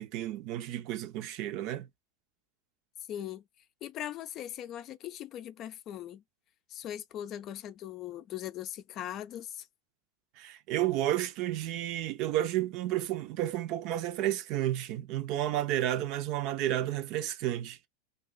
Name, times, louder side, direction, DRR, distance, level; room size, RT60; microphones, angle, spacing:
voice 1, 0.0-1.9 10.4-17.9, right 13 dB, 55° right, 0.7 m, -31 dB
voice 2, 3.1-3.4 3.8-6.2 6.7-9.7, left 11 dB, 45° left, 0.5 m, -40 dB
2.6 x 2.4 x 3.9 m
hypercardioid pair, 105°, 0 cm